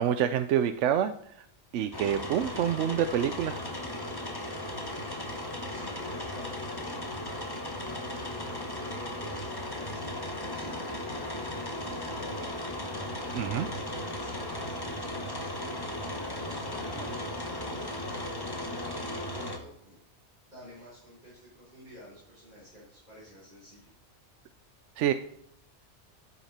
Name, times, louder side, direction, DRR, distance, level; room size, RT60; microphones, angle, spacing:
voice 1, 0.0-1.5 1.7-3.6 13.3-13.7 25.0-25.1, right 9 dB, 90° right, 11 dB, 0.9 m, -27 dB
sound 1, 1.9-19.6, left 1 dB, 20° left, 1.2 m, -36 dB
voice 2, 5.7-7.2 7.9-11.0 11.7-12.5 13.2-20.0 20.5-23.9, left 1 dB, 40° right, -10 dB, 5.2 m, -51 dB
13.0 x 7.0 x 4.2 m, 0.72 s
omnidirectional pair, 1.2 m